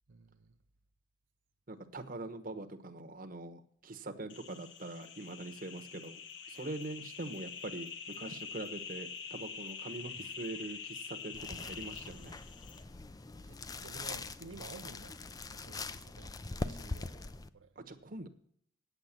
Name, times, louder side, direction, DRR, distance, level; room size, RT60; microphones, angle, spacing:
voice 1, 0.1-0.5 10.2-10.3 13.4-17.7, right 4 dB, 85° right, 0.7 m, -53 dB
voice 2, 1.7-6.2 6.5-12.4 17.8-18.3, right 2 dB, 45° right, 1.1 m, -43 dB
sound 1, 4.3-12.8, left 6 dB, 65° left, 1.0 m, -46 dB
sound 2, 11.3-17.5, left 3 dB, 20° left, 0.4 m, -42 dB
9.0 x 8.2 x 7.3 m
head